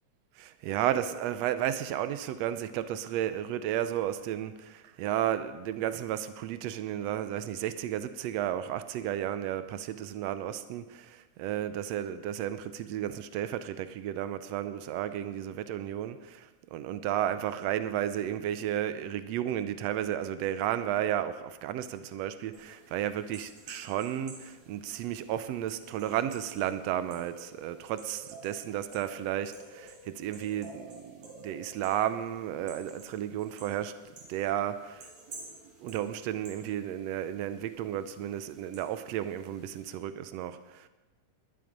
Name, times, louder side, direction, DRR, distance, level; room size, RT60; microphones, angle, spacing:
voice 1, 0.4-34.0 34.3-35.1 35.8-40.9, right 11 dB, 80° right, 12 dB, 1.5 m, -33 dB
sound 1, 22.5-39.9, right 3 dB, 60° right, 4.9 m, -52 dB
20.0 x 11.5 x 5.2 m, 1.1 s
omnidirectional pair, 3.7 m